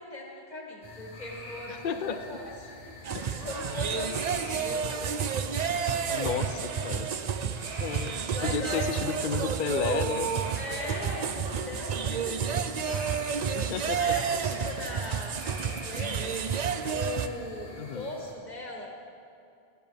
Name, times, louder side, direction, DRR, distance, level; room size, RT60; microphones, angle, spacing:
voice 1, 0.0-6.7 6.9-7.1 7.3-7.4 8.4-9.6 10.6-16.3 16.9-19.0, left 1 dB, 45° left, -1 dB, 2.0 m, -40 dB
sound 1, 0.8-18.3, left 1 dB, 85° left, 2.2 m, -46 dB
voice 2, 1.7-2.2 3.1-3.3 6.1-7.1 7.8-8.2 8.4-10.3 13.5-14.2 15.0-15.1 17.8-18.1, left 6 dB, 60° left, 8 dB, 0.7 m, -32 dB
sound 2, 3.0-17.3, right 7 dB, 50° right, 0.6 m, -30 dB
17.0 x 12.5 x 3.5 m, 2.5 s
omnidirectional pair, 1.0 m